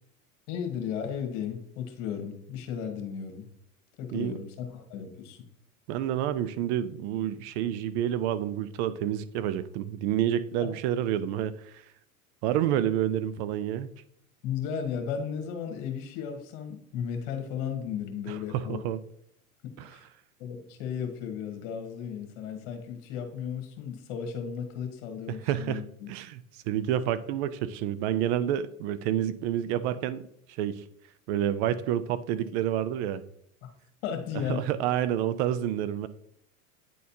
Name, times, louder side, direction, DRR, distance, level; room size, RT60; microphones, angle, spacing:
voice 1, 0.5-3.5 4.0-5.4 10.6-10.7 14.4-18.8 19.6-20.1 20.4-26.1 33.6-33.7 34.0-34.7, left 7 dB, 55° left, 6 dB, 1.5 m, -35 dB
voice 2, 5.9-11.8 12.4-13.9 18.3-19.0 19.8-19.9 25.3-30.2 30.6-30.8 31.3-33.2 34.5-36.1, right 11 dB, 50° right, 14 dB, 0.5 m, -29 dB
9.0 x 4.1 x 2.8 m, 0.72 s
hypercardioid pair, 95°, 43 cm